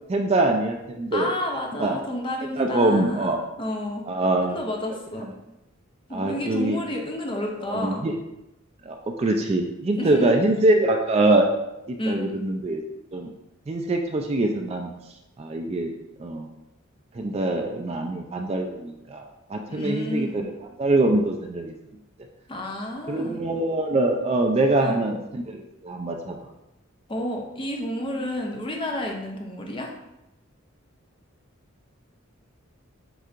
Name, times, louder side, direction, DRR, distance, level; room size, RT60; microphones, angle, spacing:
voice 1, 0.1-1.3 1.8-2.0 2.6-3.4 4.1-4.6 5.2-5.3 6.1-6.8 7.7-8.2 8.8-11.5 11.9-12.8 13.1-13.3 13.7-14.9 15.4-15.9 16.2-16.5 17.1-20.5 20.8-21.7 23.1-26.4, right 2 dB, 30° right, 3 dB, 0.3 m, -24 dB
voice 2, 1.1-4.0 4.4-5.3 6.1-8.1 10.0-10.4 12.0-12.3 19.7-20.4 22.5-23.4 24.8-25.0 27.1-29.9, left 1 dB, 25° left, 1 dB, 0.6 m, -30 dB
7.7 x 2.8 x 2.4 m, 0.91 s
head